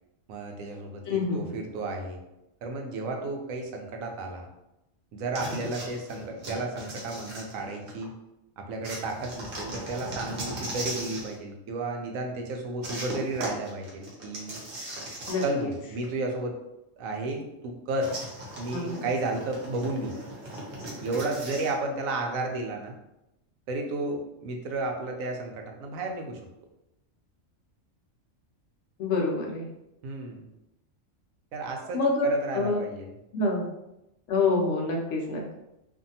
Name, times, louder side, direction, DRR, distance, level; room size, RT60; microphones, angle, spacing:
voice 1, 0.3-2.2 2.6-4.5 5.1-8.1 8.6-14.6 15.4-16.6 17.0-18.1 18.6-20.2 21.0-22.9 23.7-26.4 30.0-30.5 31.5-33.1, right 2 dB, 85° right, 2 dB, 1.0 m, -33 dB
voice 2, 1.1-1.5 15.3-15.4 18.7-19.1 29.0-29.7 31.9-32.8 33.3-33.7 34.3-35.5, left 3 dB, 70° left, 0 dB, 0.9 m, -26 dB
sound 1, 5.3-8.0 8.8-11.4 12.8-15.8 16.0-16.1 18.0-21.8, right 1 dB, 50° right, 0.9 m, -38 dB
2.6 x 2.5 x 2.7 m, 0.89 s
omnidirectional pair, 1.4 m